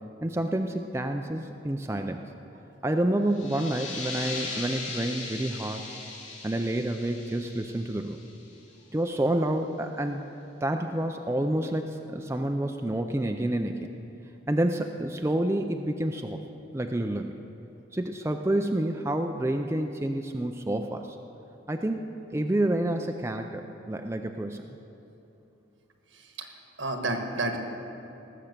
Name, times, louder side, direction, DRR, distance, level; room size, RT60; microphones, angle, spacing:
voice 1, 0.2-2.2 2.8-5.8 6.4-8.2 8.9-10.2 10.6-13.9 14.5-16.4 16.7-17.3 17.9-21.2 21.7-24.7, right 1 dB, 15° right, 5 dB, 0.4 m, -28 dB
sound 1, 3.3-8.7, left 3 dB, 80° left, 2.7 m, -39 dB
voice 2, 26.1-26.5 26.8-27.6, right 2 dB, 75° right, 4 dB, 1.5 m, -31 dB
18.5 x 7.5 x 6.7 m, 2.9 s
head